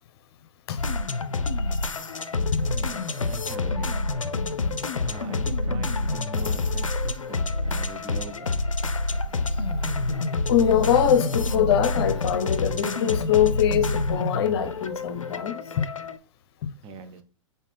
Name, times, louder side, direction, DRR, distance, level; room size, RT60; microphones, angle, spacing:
sound 1, 0.8-16.2, left 2 dB, 90° left, 0.4 m, -27 dB
voice 1, 2.7-4.0 5.0-8.6 16.8-17.2, right 6 dB, 30° right, 0.7 m, -42 dB
voice 2, 10.5-15.9 16.6-16.7, left 9 dB, 50° left, 0.7 m, -23 dB
4.1 x 3.8 x 3.4 m
figure-of-eight pair, 105°, 16 cm